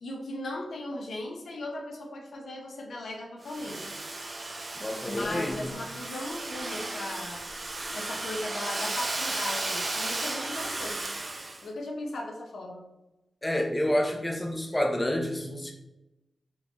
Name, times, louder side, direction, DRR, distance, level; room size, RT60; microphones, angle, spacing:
voice 1, 0.0-3.9 5.1-7.5 7.9-11.0 11.6-12.9, left 2 dB, 80° left, 1 dB, 0.6 m, -37 dB
Domestic sounds home sounds, 3.4-11.7, right 2 dB, 35° right, 0.4 m, -34 dB
voice 2, 4.8-5.6 13.4-15.7, left 1 dB, 15° left, 1 dB, 0.5 m, -28 dB
3.7 x 2.6 x 2.9 m, 0.94 s
wide cardioid pair, 125°, 0 cm